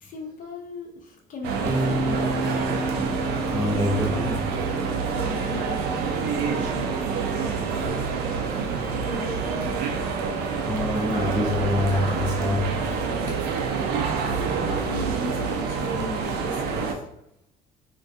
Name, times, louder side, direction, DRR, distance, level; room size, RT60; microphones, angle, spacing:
voice 1, 0.0-2.6 4.9-7.1 7.4-8.4 8.6-9.9 14.3-17.0, left 1 dB, 55° left, 1 dB, 0.7 m, -37 dB
sound 1, 1.4-16.9, right 5 dB, 75° right, 0.4 m, -27 dB
Bass guitar, 1.6-7.9, right 1 dB, 35° right, 0.8 m, -32 dB
voice 2, 3.5-4.6 10.6-12.8 13.3-13.4, left 2 dB, 10° left, -6 dB, 0.5 m, -26 dB
2.2 x 2.2 x 2.6 m, 0.76 s
cardioid pair, 110°, 17 cm